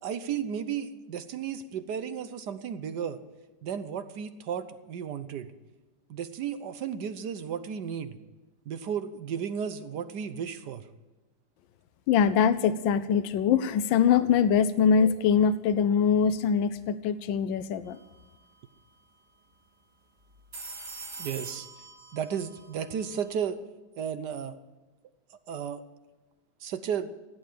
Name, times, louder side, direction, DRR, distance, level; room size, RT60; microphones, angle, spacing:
voice 1, 0.0-3.2 3.6-5.5 6.1-8.2 8.7-10.8 21.2-21.7 22.1-23.6 24.0-24.6 25.5-25.8 26.6-27.1, right 8 dB, 65° right, 11 dB, 1.3 m, -34 dB
voice 2, 12.1-18.0, left 7 dB, 85° left, 13 dB, 1.4 m, -23 dB
sound 1, 17.9-18.2 18.4-18.5 20.3-23.5, right 3 dB, 40° right, 2.6 m, -44 dB
16.5 x 8.7 x 9.3 m, 1.1 s
omnidirectional pair, 2.0 m